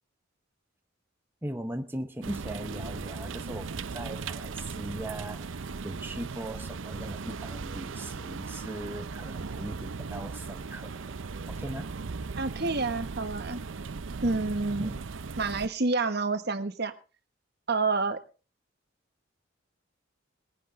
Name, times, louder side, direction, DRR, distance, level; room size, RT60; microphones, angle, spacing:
voice 1, 1.4-11.0 11.5-11.9 14.8-15.0, right 1 dB, 10° right, 0.7 m, -39 dB
sound 1, 2.2-15.7, right 4 dB, 70° right, 0.6 m, -38 dB
voice 2, 12.4-13.6 14.2-14.9 15.4-16.9 17.7-18.2, right 3 dB, 55° right, 1.3 m, -28 dB
20.5 x 10.0 x 3.8 m
head